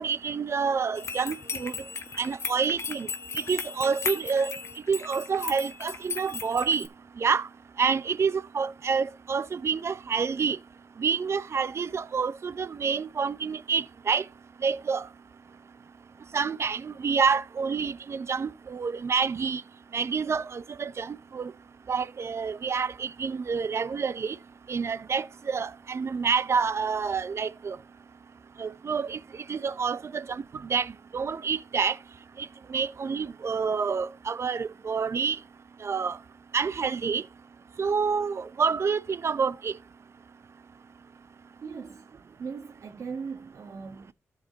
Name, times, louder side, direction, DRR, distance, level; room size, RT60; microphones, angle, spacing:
voice 1, 0.0-1.7 2.2-3.1 3.3-4.6 4.9-6.9 7.2-7.5 7.8-10.6 11.0-14.2 14.6-15.1 16.3-19.6 19.9-21.5 21.9-24.4 24.7-27.8 28.6-29.2 29.5-32.0 32.4-35.4 35.8-36.2 36.5-37.2 37.8-39.7, right 5 dB, 60° right, 0.7 m, -28 dB
sound 1, 0.9-6.9, left 5 dB, 60° left, 1.3 m, -36 dB
voice 2, 41.6-42.1 42.4-44.1, right 5 dB, 80° right, 1.7 m, -39 dB
13.5 x 4.8 x 4.1 m
cardioid pair, 65°, 5 cm